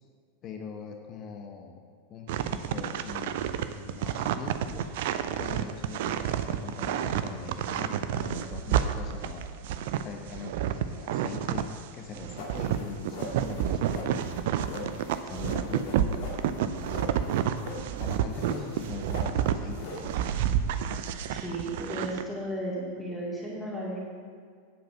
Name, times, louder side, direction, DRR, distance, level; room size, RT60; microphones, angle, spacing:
voice 1, 0.4-1.8 2.1-4.9 5.4-9.6 10.0-11.7 11.9-14.9 15.2-17.1 18.0-20.3, left 6 dB, 35° left, 4 dB, 0.9 m, -42 dB
sound 1, 2.3-11.8 12.1-19.6 20.0-22.2, right 10 dB, 50° right, 0.5 m, -29 dB
sound 2, 12.4-20.6, left 2 dB, 50° left, 2.4 m, -42 dB
voice 2, 21.3-24.0, right 1 dB, ahead, -7 dB, 2.4 m, -34 dB
9.2 x 7.6 x 5.8 m, 2.1 s
figure-of-eight pair, 90°, 0 cm